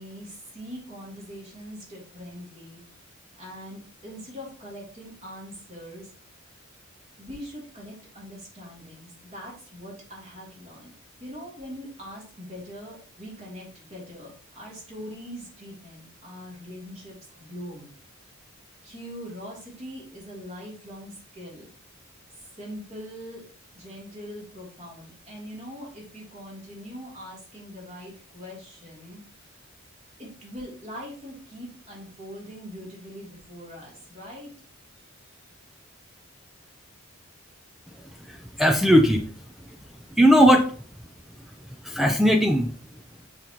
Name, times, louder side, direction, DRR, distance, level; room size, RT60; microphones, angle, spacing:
voice 1, 0.0-2.8 3.4-6.1 7.2-10.9 11.2-18.0 18.8-21.7 22.3-23.4 23.7-29.6 30.2-34.5, equal, 30° right, -4 dB, 3.2 m, -42 dB
voice 2, 38.3-39.2 39.7-39.8 40.2-40.8 41.8-42.7, equal, ahead, 3 dB, 0.5 m, -18 dB
6.7 x 5.7 x 3.0 m, 0.42 s
head